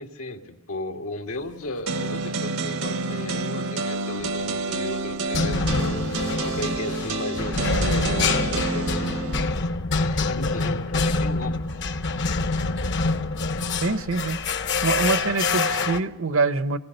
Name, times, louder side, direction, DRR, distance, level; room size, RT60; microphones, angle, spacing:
voice 1, 0.0-5.8 6.4-9.2 10.0-11.6, left 2 dB, 90° left, 2.1 m, -34 dB
sound 1, 1.9-9.5, right 3 dB, 85° right, 1.4 m, -29 dB
sound 2, 4.2-4.6 5.3-16.0, left 3 dB, 55° left, 0.9 m, -26 dB
voice 2, 13.8-16.8, right 3 dB, 70° right, 0.8 m, -25 dB
28.5 x 19.5 x 6.6 m
head